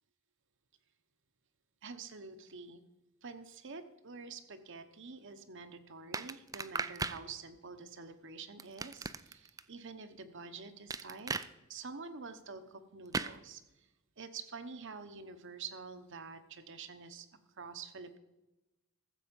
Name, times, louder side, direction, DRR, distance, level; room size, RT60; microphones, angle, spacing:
voice 1, 1.8-2.8 3.2-11.3 11.7-13.9 14.2-17.3 17.6-18.2, right 4 dB, 55° right, 9 dB, 1.0 m, -47 dB
sound 1, 6.1-7.2 8.6-9.6 10.9-11.5 13.1-13.3, right 4 dB, 15° right, 0.3 m, -37 dB
14.5 x 7.6 x 5.3 m, 0.99 s
head